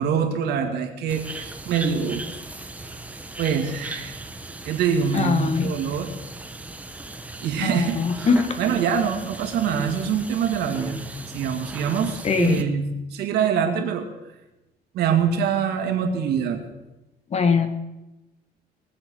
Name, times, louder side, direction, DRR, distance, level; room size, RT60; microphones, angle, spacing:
voice 1, 0.0-2.2 3.4-4.2 4.7-6.1 7.4-8.3 8.6-11.0 11.3-14.1 14.9-16.7, right 7 dB, 75° right, 4 dB, 2.2 m, -24 dB
sound 1, 1.1-12.6, right 2 dB, 10° right, 1.2 m, -37 dB
voice 2, 5.1-5.7 7.6-8.6 12.2-12.6 17.3-17.7, left 5 dB, 40° left, 8 dB, 1.6 m, -21 dB
21.5 x 7.6 x 6.3 m, 1.0 s
cardioid pair, 110°, 17 cm